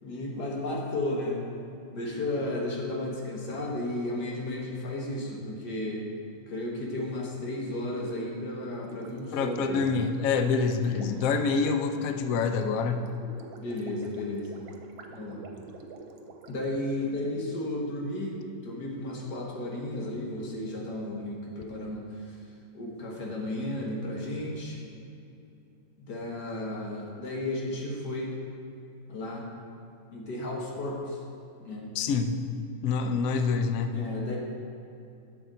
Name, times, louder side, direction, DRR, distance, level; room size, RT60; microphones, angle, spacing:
voice 1, 0.0-1.4 1.9-6.0 6.5-9.8 10.7-11.2 13.6-14.6 15.1-15.4 16.5-18.4 18.6-22.4 22.7-24.8 26.0-28.4 29.1-29.5 30.1-31.2 31.6-31.9 33.9-34.4, left 1 dB, 60° left, -2 dB, 2.0 m, -33 dB
Gurgling, 8.8-17.2, right 3 dB, 85° right, 1.6 m, -48 dB
voice 2, 9.3-13.0 31.9-32.4 32.8-33.9, left 5 dB, 85° left, 7 dB, 0.7 m, -26 dB
12.0 x 7.0 x 3.9 m, 2.7 s
omnidirectional pair, 2.1 m